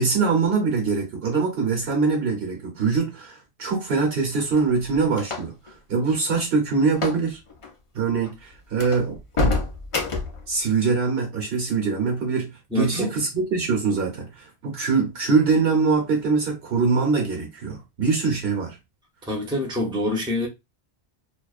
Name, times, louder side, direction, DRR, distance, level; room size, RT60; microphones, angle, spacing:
voice 1, 0.0-7.4 7.9-9.6 10.5-18.8, right 4 dB, 70° right, 1.1 m, -23 dB
sound 1, 4.3-5.7 6.9-7.2 7.5-7.7 8.2-8.3 8.8-10.4, left 3 dB, 40° left, 0.5 m, -27 dB
voice 2, 12.7-13.1 19.3-20.5, left 2 dB, 5° right, 0.6 m, -26 dB
2.3 x 2.2 x 2.4 m
omnidirectional pair, 1.1 m